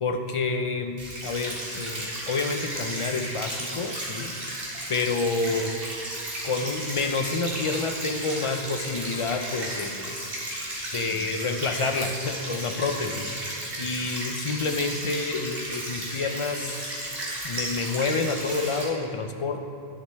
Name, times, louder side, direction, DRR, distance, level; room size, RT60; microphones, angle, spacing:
voice 1, 0.0-1.0 1.2-4.3 4.9-5.7 6.4-10.2 10.9-13.4 13.8-16.9 17.4-19.6, left 3 dB, 55° left, 5 dB, 0.3 m, -28 dB
sound 1, 1.0-18.8, right 1 dB, 60° right, 2.1 m, -34 dB
10.5 x 7.6 x 3.4 m, 2.8 s
omnidirectional pair, 1.1 m